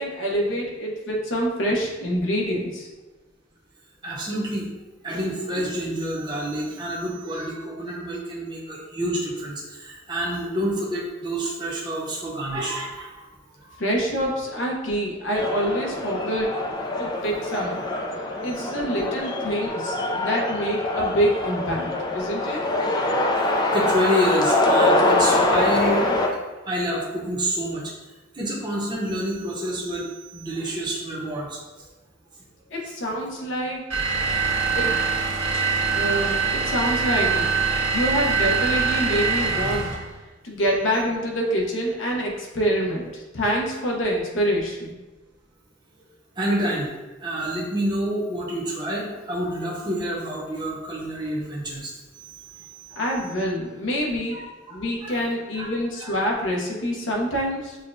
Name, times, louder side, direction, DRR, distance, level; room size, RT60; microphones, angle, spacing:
voice 1, 0.0-2.9 13.8-16.5 17.0-17.8 18.4-22.6 32.7-33.8 34.7-34.9 35.5-35.7 35.9-37.5 37.9-39.9 40.4-44.9 53.0-54.4 54.7-57.8, equal, 65° left, -1 dB, 0.8 m, -26 dB
voice 2, 4.0-4.7 5.0-13.3 13.7-13.8 18.8-19.0 23.7-26.0 26.7-27.9 28.3-31.6 46.4-46.9 47.2-53.0 54.3-54.4 54.7-54.8 55.0-55.3 55.6-55.7 56.0-56.1, equal, 20° right, -5 dB, 0.7 m, -28 dB
sound 1, 15.3-26.3, left 2 dB, 20° left, 0.3 m, -24 dB
sound 2, 33.9-40.1, right 5 dB, 75° right, 1.5 m, -23 dB
6.3 x 2.2 x 2.6 m, 1.1 s
head